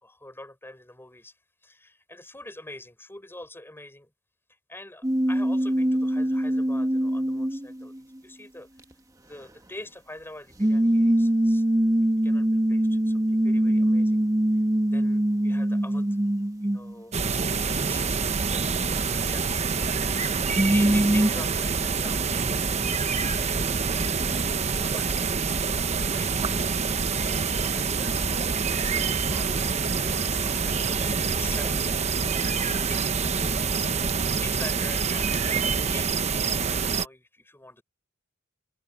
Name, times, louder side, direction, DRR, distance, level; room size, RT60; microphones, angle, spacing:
voice 1, 0.0-1.4 1.6-4.1 4.5-8.8 9.3-11.6 12.2-14.2 14.5-14.7 14.9-16.2 16.6-18.7 18.9-19.5 20.0-22.7 24.5-27.2 27.5-31.9 32.2-37.8, left 2 dB, 10° left, 6.4 m, -45 dB
sound 1, 5.0-8.2 10.6-17.0 20.4-21.3, right 1 dB, 15° right, 1.3 m, -23 dB
sound 2, 17.1-37.0, right 5 dB, 35° right, 0.9 m, -26 dB
sound 3, 22.9-34.1, left 1 dB, 65° left, 4.0 m, -45 dB
open air
head